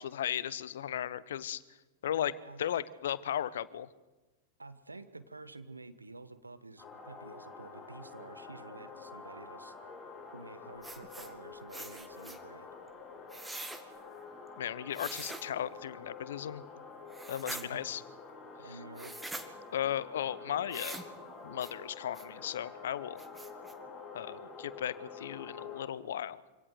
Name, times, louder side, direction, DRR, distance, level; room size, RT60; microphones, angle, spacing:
voice 1, 0.0-1.6 2.0-3.9 14.6-16.6 17.3-18.0 19.7-21.0 21.4-23.2 24.1-26.4, left 10 dB, 60° left, 19 dB, 0.9 m, -36 dB
voice 2, 4.6-9.7 10.3-12.7 17.4-18.0 18.6-19.2, right 3 dB, 80° right, 11 dB, 1.4 m, -50 dB
sound 1, 6.8-25.8, left 4 dB, 15° left, 7.8 m, -48 dB
sound 2, 10.8-11.3 11.7-12.4 13.3-13.8 14.9-15.5 17.1-17.6 19.0-19.5 20.7-21.1 21.6-21.7 22.1-22.2 22.7-22.8 23.2-23.7, right 2 dB, 5° right, 2.0 m, -43 dB
25.5 x 17.5 x 6.7 m, 1.1 s
figure-of-eight pair, 90°, 0 cm